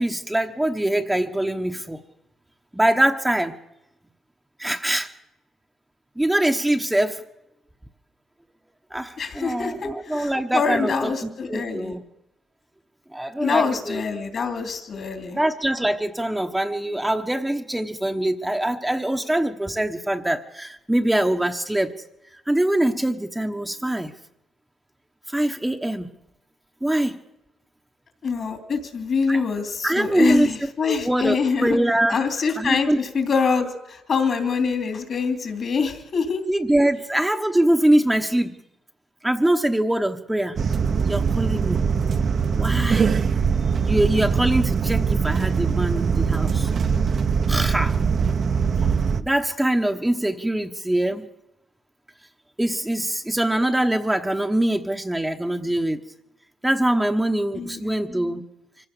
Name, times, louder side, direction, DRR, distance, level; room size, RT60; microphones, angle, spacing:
voice 1, 0.0-2.0 2.7-3.6 4.6-5.1 6.2-7.2 8.9-12.0 13.1-14.0 15.3-21.9 22.5-24.1 25.3-26.1 26.8-27.2 29.3-29.4 29.8-30.5 30.8-32.2 32.6-33.0 36.5-38.6 39.2-40.6 41.0-41.8 42.6-43.1 43.8-46.7 47.5-48.0 48.8-48.9 49.2-51.3 52.6-56.0 56.6-58.4, right 1 dB, 10° right, 5 dB, 1.1 m, -23 dB
voice 2, 9.2-11.9 13.4-15.4 28.2-31.8 32.1-36.4 57.5-58.0, left 5 dB, 50° left, 6 dB, 3.1 m, -25 dB
sound 1, 40.6-49.2, right 6 dB, 50° right, 1.0 m, -22 dB
24.5 x 16.0 x 6.8 m, 0.89 s
cardioid pair, 90°, 0 cm